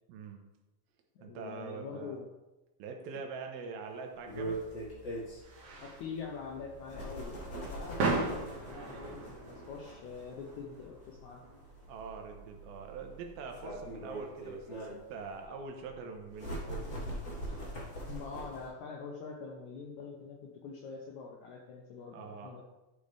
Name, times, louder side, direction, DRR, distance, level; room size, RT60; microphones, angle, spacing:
voice 1, 0.1-0.4 1.2-2.2 2.8-4.6 11.9-16.8 22.1-22.6, right 5 dB, 85° right, 3 dB, 2.8 m, -44 dB
voice 2, 1.2-2.3 3.1-3.3 5.8-11.4 18.1-22.6, left 5 dB, 75° left, 0 dB, 1.7 m, -44 dB
sound 1, 4.1-15.4, right 3 dB, 60° right, 2.8 m, -40 dB
sound 2, 4.3-18.7, right 1 dB, 35° left, 1.1 m, -43 dB
12.0 x 5.2 x 3.4 m, 1.1 s
omnidirectional pair, 4.2 m